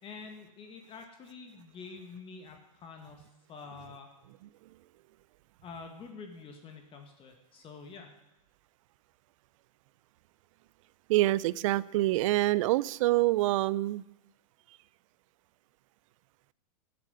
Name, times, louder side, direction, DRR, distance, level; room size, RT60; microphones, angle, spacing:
voice 1, 0.0-4.1 5.6-8.1, left 5 dB, 25° left, 5 dB, 2.1 m, -47 dB
voice 2, 11.1-14.0, right 17 dB, 55° right, 20 dB, 0.6 m, -26 dB
13.5 x 7.8 x 9.9 m, 0.93 s
hypercardioid pair, 130°, 20 cm